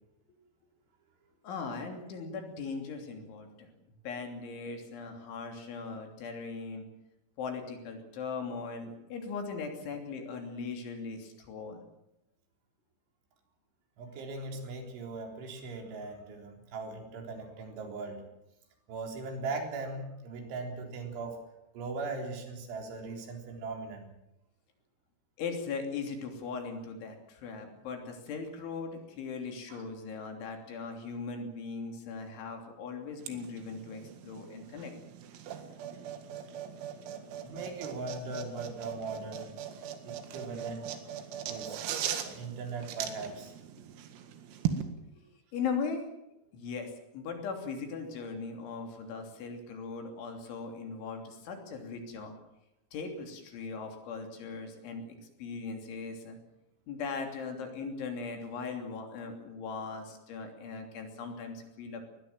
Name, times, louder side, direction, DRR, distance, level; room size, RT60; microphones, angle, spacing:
voice 1, 1.4-3.7 4.0-6.9 7.4-11.8 25.4-34.9 43.8-43.9 45.2-45.3 45.5-46.1 46.5-52.3 52.9-56.4 56.9-62.0, left 5 dB, 65° left, 4 dB, 5.3 m, -39 dB
voice 2, 14.0-18.2 18.9-21.4 21.7-24.1 29.7-29.9 35.5-35.7 37.4-39.5 40.0-40.9 41.5-41.8 42.3-43.5, right 3 dB, 65° right, 3 dB, 6.2 m, -39 dB
sound 1, 33.2-44.8, right 9 dB, 85° right, 4.6 m, -39 dB
21.0 x 20.5 x 7.5 m, 0.86 s
omnidirectional pair, 6.0 m